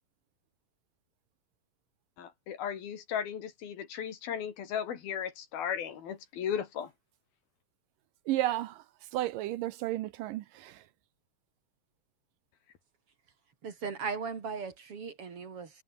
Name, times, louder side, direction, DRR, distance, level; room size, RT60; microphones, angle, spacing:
voice 1, 2.2-6.9, left 8 dB, 80° left, 4.6 m, -36 dB
voice 2, 8.3-8.8 9.1-10.8, right 14 dB, 75° right, 2.3 m, -32 dB
voice 3, 13.6-15.7, right 5 dB, 45° right, 2.9 m, -37 dB
omnidirectional pair, 4.2 m